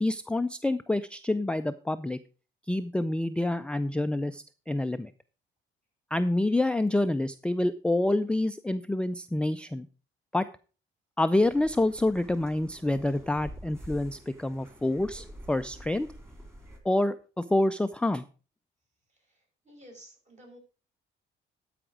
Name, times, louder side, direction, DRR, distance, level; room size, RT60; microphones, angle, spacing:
voice 1, 0.0-2.2 2.7-5.1 6.1-9.9 10.3-10.5 11.2-16.1 16.8-18.2, left 1 dB, 5° left, 10 dB, 0.4 m, -27 dB
sound 1, 11.4-16.8, equal, 10° right, 3.4 m, -47 dB
voice 2, 19.1-20.6, equal, 35° right, 0 dB, 5.3 m, -53 dB
13.0 x 5.0 x 4.9 m, 0.36 s
cardioid pair, 90°, 20 cm